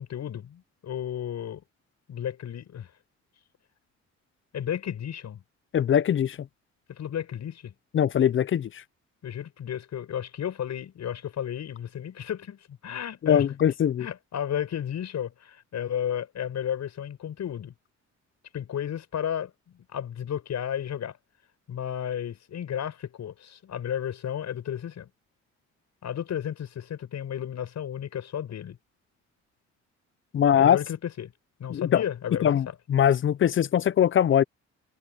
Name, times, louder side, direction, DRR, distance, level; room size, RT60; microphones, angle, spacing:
voice 1, 0.0-1.6 2.1-2.9 4.5-5.4 6.9-7.7 9.2-13.5 14.0-17.7 18.5-21.2 21.7-25.1 26.0-28.8 30.5-31.3 31.6-32.7, left 9 dB, 65° left, 6.9 m, -33 dB
voice 2, 5.7-6.4 7.9-8.7 13.2-14.1 30.3-30.8 31.7-32.0 32.4-34.4, left 9 dB, 40° left, 0.5 m, -22 dB
cardioid pair, 90°, 30 cm